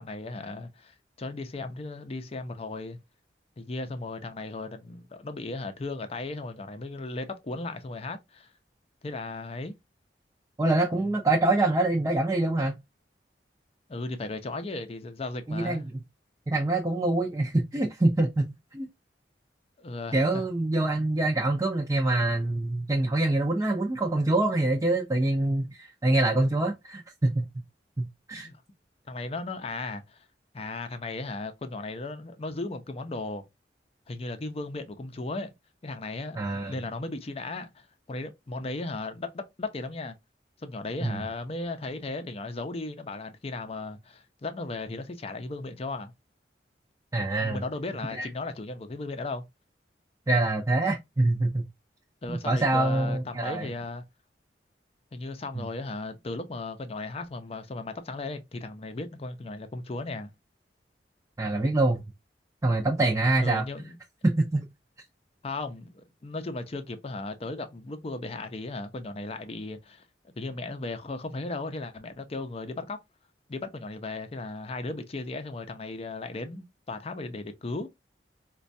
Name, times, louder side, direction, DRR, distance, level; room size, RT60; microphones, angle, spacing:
voice 1, 0.0-3.0 3.6-8.5 9.0-9.8 10.9-11.1 13.9-15.8 19.8-20.4 28.3-28.6 29.1-30.2 30.5-33.4 34.1-35.5 35.8-36.4 36.7-40.2 40.6-46.1 47.4-49.4 52.2-54.0 55.1-60.3 63.4-64.0 65.4-73.0 73.5-77.9, left 2 dB, 35° left, 0.5 m, -36 dB
voice 2, 10.6-12.8 15.5-16.0 16.5-18.9 20.1-27.5 28.0-28.5 36.3-36.7 41.0-41.2 47.1-47.6 48.1-48.3 50.3-51.6 52.3-53.7 55.5-55.7 61.4-62.0 62.6-63.6 64.2-64.6, right 2 dB, 20° right, 0.5 m, -25 dB
4.2 x 2.2 x 2.6 m
head